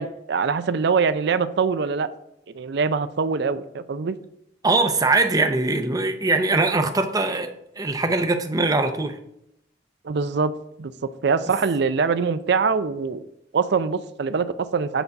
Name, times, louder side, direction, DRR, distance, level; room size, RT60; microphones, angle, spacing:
voice 1, 0.0-2.1 2.5-4.1 10.0-10.5 10.8-10.9 11.2-13.2 13.5-15.0, right 5 dB, 60° right, 13 dB, 0.4 m, -23 dB
voice 2, 4.6-7.5 7.8-9.2, right 3 dB, 20° right, 7 dB, 0.6 m, -21 dB
8.0 x 4.0 x 4.6 m, 0.80 s
head